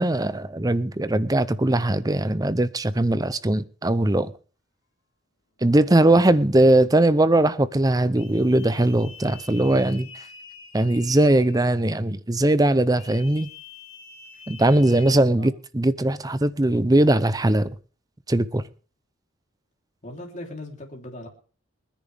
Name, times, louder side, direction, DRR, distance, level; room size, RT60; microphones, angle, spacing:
voice 1, 0.0-4.3 5.6-10.2 10.7-13.5 14.5-17.7 18.3-18.6, right 1 dB, 15° right, 0.6 m, -20 dB
sound 1, 8.1-12.0 12.9-15.1, left 6 dB, 65° left, 4.4 m, -46 dB
voice 2, 14.8-15.1 15.4-15.5 20.0-21.3, left 1 dB, 35° left, 3.4 m, -38 dB
27.5 x 10.5 x 3.5 m
head